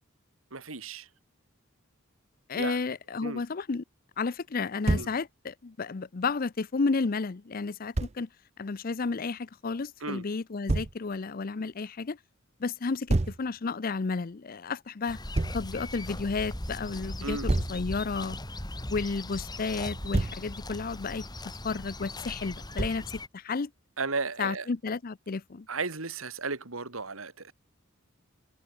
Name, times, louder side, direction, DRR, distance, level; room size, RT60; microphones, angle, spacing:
voice 1, 0.5-1.1 2.5-2.8 3.2-3.4 4.9-5.1 10.0-10.2 17.2-17.5 24.0-24.7 25.7-27.5, right 4 dB, 90° right, 2.7 m, -34 dB
voice 2, 2.5-3.8 4.2-8.3 8.6-12.2 12.6-15.2 15.5-18.4 18.9-21.3 21.6-23.7 24.4-25.7, left 4 dB, 45° left, 0.6 m, -32 dB
Thump thud, 4.8-5.2 7.9-8.2 10.7-11.0 13.1-13.4 15.3-15.6 17.5-17.8 19.8-20.4 22.8-23.1, right 2 dB, 30° right, 0.6 m, -28 dB
sound 1, 15.1-23.3, left 1 dB, 20° left, 4.1 m, -39 dB
head